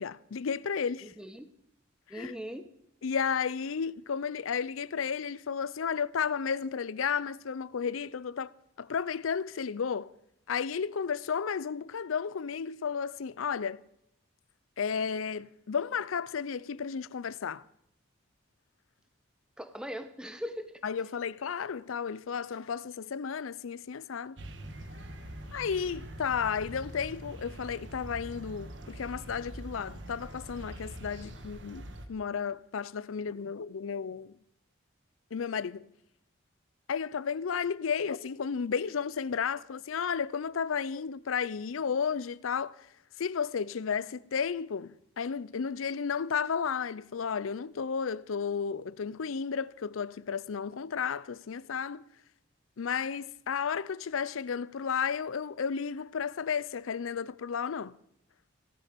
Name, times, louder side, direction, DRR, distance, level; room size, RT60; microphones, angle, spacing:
voice 1, 0.0-1.1 2.1-2.3 3.0-10.1 10.5-13.8 14.8-17.6 20.8-24.4 25.5-34.3 35.3-35.9 36.9-42.9 43.2-52.1 52.8-58.0, left 6 dB, 90° left, 0.5 m, -33 dB
voice 2, 1.0-1.5 2.1-2.7 19.6-20.8, equal, 5° right, 0.9 m, -40 dB
sound 1, 24.4-32.1, right 1 dB, 60° right, 1.4 m, -44 dB
16.5 x 13.0 x 5.2 m
head